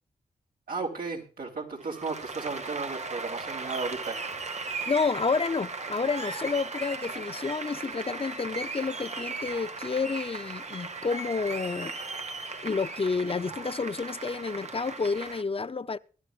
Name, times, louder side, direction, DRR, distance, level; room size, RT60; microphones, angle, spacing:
voice 1, 0.7-4.2, right 4 dB, 75° right, 3.6 m, -34 dB
Applause, 1.8-15.4, right 3 dB, 50° right, 1.2 m, -37 dB
voice 2, 4.9-11.9 12.6-16.0, left 4 dB, 40° left, 0.6 m, -30 dB
22.5 x 11.5 x 2.4 m
cardioid pair, 40°, 15 cm